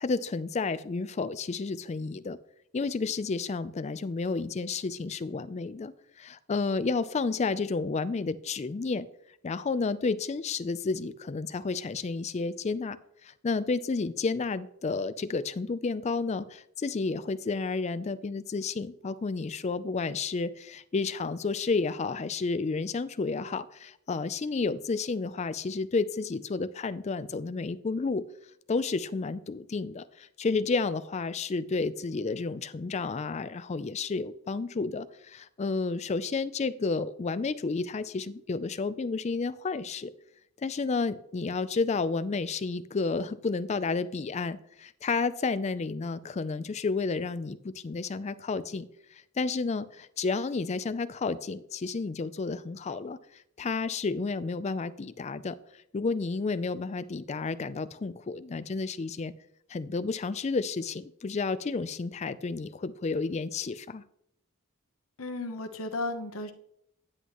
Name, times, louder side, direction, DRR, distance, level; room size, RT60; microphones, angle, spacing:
voice 1, 0.0-2.4 2.7-9.1 9.4-13.0 13.2-28.3 28.7-40.1 40.6-55.6 55.9-59.3 59.7-64.0, left 4 dB, 30° left, 14 dB, 0.3 m, -31 dB
voice 2, 65.2-66.5, left 2 dB, 65° left, 5 dB, 0.9 m, -34 dB
9.8 x 8.2 x 3.0 m, 0.74 s
head